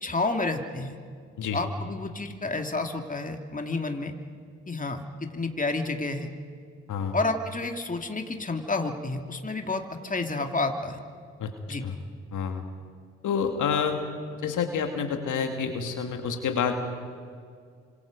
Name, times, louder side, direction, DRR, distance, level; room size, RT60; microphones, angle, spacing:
voice 1, 0.0-0.9 1.5-4.1 4.7-6.3 7.1-11.0 11.7-11.8, left 3 dB, 25° left, 4 dB, 2.6 m, -30 dB
voice 2, 12.3-12.6 13.2-14.0 14.4-16.8, left 6 dB, 65° left, 5 dB, 2.3 m, -28 dB
29.5 x 26.0 x 5.3 m, 2.1 s
hypercardioid pair, 45°, 33 cm